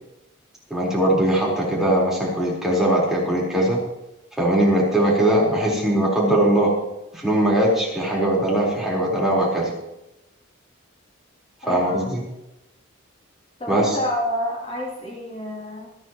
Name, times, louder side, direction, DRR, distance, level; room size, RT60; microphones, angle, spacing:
voice 1, 0.7-3.8 4.4-6.7 7.1-9.7 11.7-12.2 13.7-14.0, right 1 dB, ahead, -6 dB, 4.2 m, -20 dB
voice 2, 11.6-12.1 13.6-15.9, left 1 dB, 30° left, -5 dB, 3.0 m, -28 dB
26.5 x 9.5 x 3.1 m, 0.93 s
head